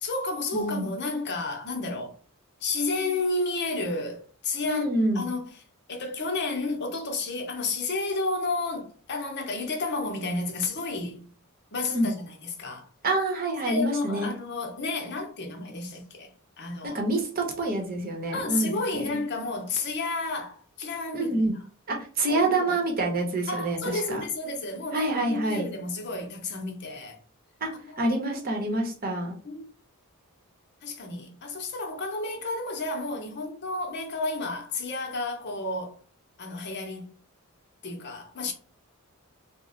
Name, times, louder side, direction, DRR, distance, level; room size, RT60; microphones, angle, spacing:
voice 1, 0.0-2.2 2.6-4.8 5.1-5.5 5.9-11.3 11.7-12.9 13.6-16.3 16.6-17.0 18.3-21.4 22.3-22.7 23.5-27.2 27.8-28.4 29.4-29.7 30.8-36.0 36.4-37.2 37.8-38.5, left 3 dB, 50° left, 0.8 m, -31 dB
voice 2, 0.5-0.9 4.6-5.3 11.9-12.1 13.0-14.3 16.8-19.2 21.1-21.5 21.9-24.2 24.9-25.7 27.6-27.7 28.0-29.3, right 2 dB, 40° right, 0.9 m, -27 dB
3.1 x 2.1 x 3.8 m
head